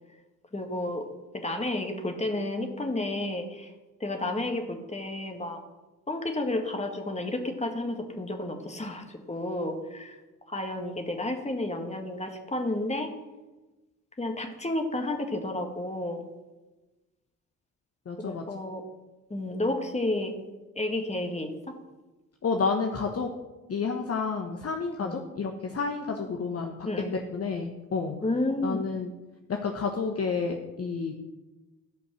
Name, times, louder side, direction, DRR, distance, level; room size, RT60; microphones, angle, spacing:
voice 1, 0.5-1.1 1.3-3.7 4.0-5.6 6.1-10.2 10.5-13.1 14.2-16.2 18.2-18.8 19.3-20.3 20.8-21.5 25.0-25.2 26.8-27.1 28.2-28.9, left 1 dB, 15° left, 3 dB, 1.9 m, -31 dB
voice 2, 18.1-18.4 22.4-23.3 23.7-26.7 27.1-28.2 28.6-29.1 29.5-31.1, left 5 dB, 35° left, 3 dB, 1.1 m, -30 dB
13.0 x 5.3 x 6.2 m, 1.1 s
figure-of-eight pair, 40°, 43 cm